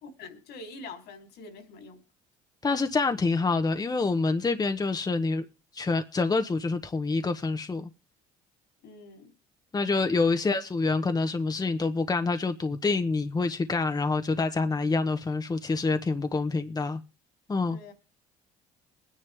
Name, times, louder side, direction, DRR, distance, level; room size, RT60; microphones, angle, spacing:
voice 1, 0.0-2.0 8.8-9.3 17.7-17.9, left 3 dB, 70° left, 3.7 m, -45 dB
voice 2, 2.6-5.4 5.7-7.9 9.7-17.0 17.5-17.8, left 3 dB, 20° left, 1.2 m, -27 dB
22.0 x 10.0 x 3.5 m
supercardioid pair, 75°, 17 cm